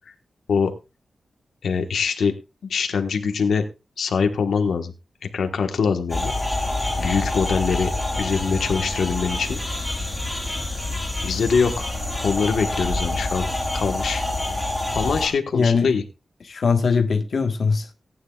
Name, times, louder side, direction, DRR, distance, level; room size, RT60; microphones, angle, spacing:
voice 1, 1.6-2.3 2.7-3.6 4.0-4.9 5.3-6.3 7.0-7.9 8.2-9.6 11.2-11.8 12.2-13.5 13.7-14.2 14.9-16.0, left 5 dB, 80° left, 1.3 m, -23 dB
sound 1, 6.1-15.3, left 2 dB, ahead, 4.2 m, -27 dB
voice 2, 15.5-15.9 16.4-17.9, left 5 dB, 50° left, 1.3 m, -21 dB
18.0 x 9.5 x 2.3 m
wide cardioid pair, 170°, 0 cm